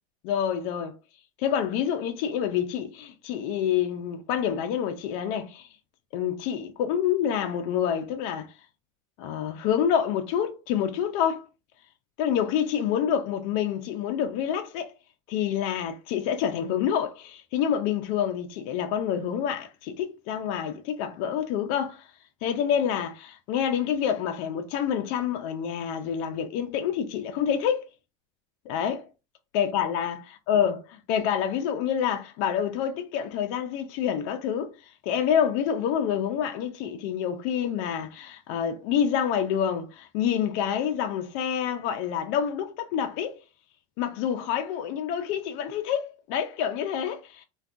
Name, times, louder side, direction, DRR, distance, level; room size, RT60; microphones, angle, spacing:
voice 1, 0.2-0.9 1.4-5.8 6.1-8.6 9.2-11.4 12.2-14.9 15.3-22.1 22.4-27.9 28.7-29.1 29.5-43.4 44.0-47.4, left 8 dB, 60° left, 0.4 m, -27 dB
3.5 x 2.2 x 2.5 m
supercardioid pair, 130°, 16 cm